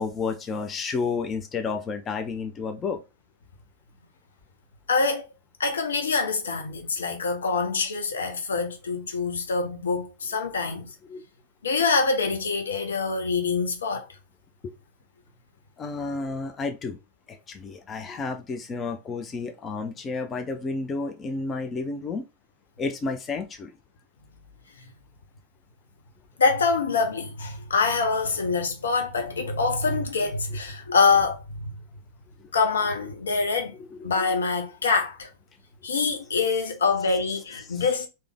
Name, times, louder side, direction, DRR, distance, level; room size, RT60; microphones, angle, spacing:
voice 1, 0.0-3.0 11.1-11.2 14.6-14.7 15.8-17.0 17.3-22.2 22.8-23.7 33.9-34.1 37.7-37.8, left 4 dB, 25° left, 0.5 m, -31 dB
voice 2, 4.9-5.3 5.6-10.9 11.6-14.0 26.4-31.8 32.5-33.7 34.0-35.3 35.8-38.1, left 4 dB, 70° left, 0.8 m, -25 dB
3.3 x 2.9 x 3.4 m
figure-of-eight pair, 90°, 0 cm